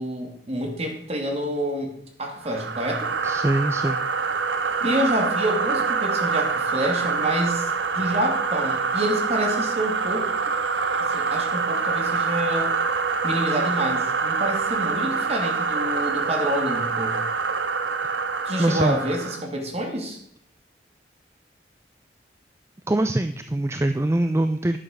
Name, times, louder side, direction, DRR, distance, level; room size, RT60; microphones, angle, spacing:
voice 1, 0.0-1.9 2.2-3.1 4.8-7.6 7.9-10.6 11.1-12.8 13.2-17.2 18.4-20.2, right 1 dB, 35° right, 2 dB, 2.6 m, -27 dB
sound 1, 2.4-19.5, right 5 dB, 90° right, 1.0 m, -25 dB
voice 2, 3.2-4.0 18.0-18.1 18.6-19.0 22.9-24.8, right 1 dB, 15° right, 9 dB, 0.4 m, -23 dB
11.0 x 7.0 x 6.6 m, 0.68 s
head